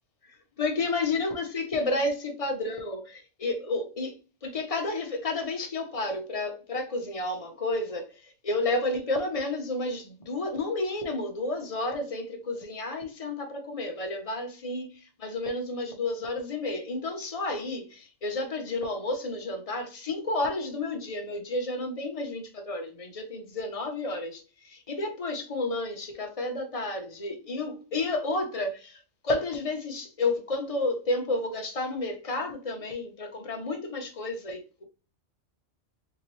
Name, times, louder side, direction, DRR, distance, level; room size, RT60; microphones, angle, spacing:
voice 1, 0.6-34.8, left 2 dB, 35° left, 0.8 m, -31 dB
3.7 x 2.9 x 3.1 m
omnidirectional pair, 1.2 m